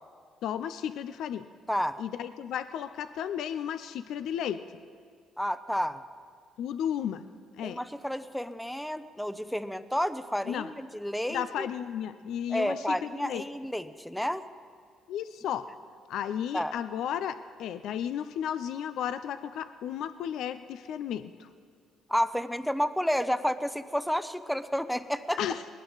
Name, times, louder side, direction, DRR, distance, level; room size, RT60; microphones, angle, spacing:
voice 1, 0.4-1.4 2.0-4.6 6.6-7.2 7.6-7.8 10.4-10.7 11.3-13.4 15.1-15.7 16.1-21.5 25.4-25.6, left 9 dB, 75° left, 11 dB, 0.5 m, -33 dB
voice 2, 1.7-2.0 5.4-6.0 7.6-11.7 12.5-14.4 16.5-16.7 22.1-25.4, equal, 5° left, 12 dB, 0.7 m, -30 dB
20.5 x 17.5 x 4.0 m, 2.2 s
cardioid pair, 90°, 0 cm